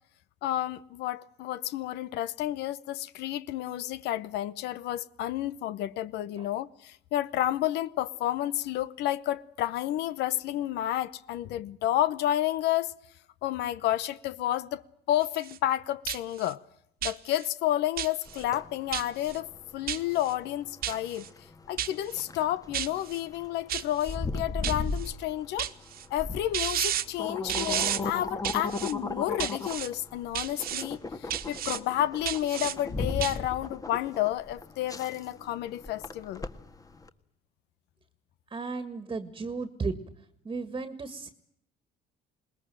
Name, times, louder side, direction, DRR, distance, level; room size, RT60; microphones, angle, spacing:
voice 1, 0.4-12.9 13.4-14.8 15.1-16.6 17.0-21.2 21.7-25.7 26.1-36.5, left 13 dB, 80° left, 0.9 m, -30 dB
sound 1, 15.2-15.6 16.1-16.5 17.0-17.5 18.0-18.4 18.9-19.4 19.9-20.3 20.8-21.3 21.8-22.2 22.7-23.2 23.7-24.1 24.6-25.1 25.6-26.0 26.5-27.0 27.5-28.0 28.4-28.9 29.4-29.9 30.3-30.8 31.3-31.8 32.2-32.7 33.2-33.4, right 11 dB, 60° right, 1.5 m, -32 dB
sound 2, 18.3-37.1, left 3 dB, 20° left, 1.7 m, -37 dB
voice 2, 38.5-39.9 40.5-41.3, right 4 dB, 25° right, 1.8 m, -34 dB
21.0 x 20.5 x 9.0 m
cardioid pair, 110°, 17 cm